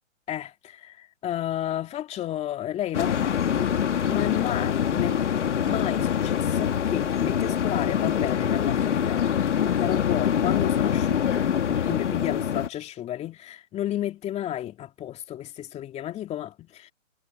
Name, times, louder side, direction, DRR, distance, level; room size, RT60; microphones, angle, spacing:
voice 1, 0.3-3.7 4.1-5.2 5.6-9.3 9.8-16.9, left 12 dB, 15° left, 3.0 m, -32 dB
sound 1, 2.9-12.7, left 8 dB, 65° left, 2.8 m, -24 dB
hypercardioid pair, 140°, 39 cm